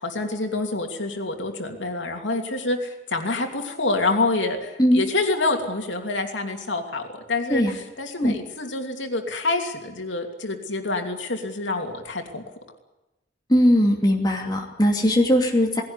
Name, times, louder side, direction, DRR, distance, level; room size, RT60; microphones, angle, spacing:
voice 1, 0.0-7.6 8.0-12.4, left 2 dB, 80° left, 3 dB, 2.9 m, -27 dB
voice 2, 13.5-15.8, equal, 20° left, 0 dB, 2.7 m, -19 dB
19.5 x 17.0 x 9.8 m, 1.0 s
head